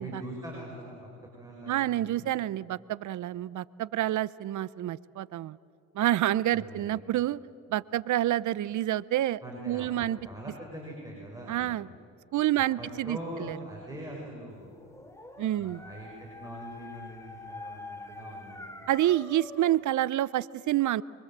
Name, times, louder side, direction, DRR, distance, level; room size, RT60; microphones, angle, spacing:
voice 1, 0.0-2.3 6.5-7.0 9.4-12.0 12.5-14.8 15.6-18.7, right 1 dB, 10° right, -1 dB, 5.8 m, -43 dB
voice 2, 1.7-5.6 5.9-7.4 7.7-10.2 11.5-11.9 12.3-13.6 15.4-15.8 18.9-21.0, right 13 dB, 55° right, 21 dB, 0.7 m, -28 dB
Dog, 14.7-19.8, left 2 dB, 10° left, 3.1 m, -45 dB
25.0 x 23.5 x 7.5 m, 2.4 s
supercardioid pair, 80°, 35 cm